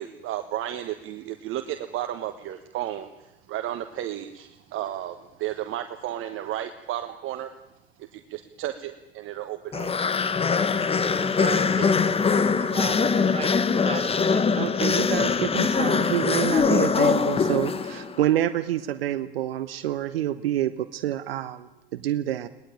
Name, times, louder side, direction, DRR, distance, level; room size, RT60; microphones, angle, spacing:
voice 1, 0.0-7.5 8.0-9.9, right 12 dB, 45° right, 7 dB, 1.4 m, -33 dB
sound 1, 9.7-18.2, left 5 dB, 20° left, 1.1 m, -22 dB
voice 2, 11.4-12.1 12.6-14.7, right 5 dB, 20° right, 3 dB, 3.7 m, -36 dB
voice 3, 14.6-22.5, right 12 dB, 75° right, 12 dB, 0.9 m, -27 dB
21.5 x 19.0 x 8.9 m, 0.95 s
figure-of-eight pair, 75°, 30 cm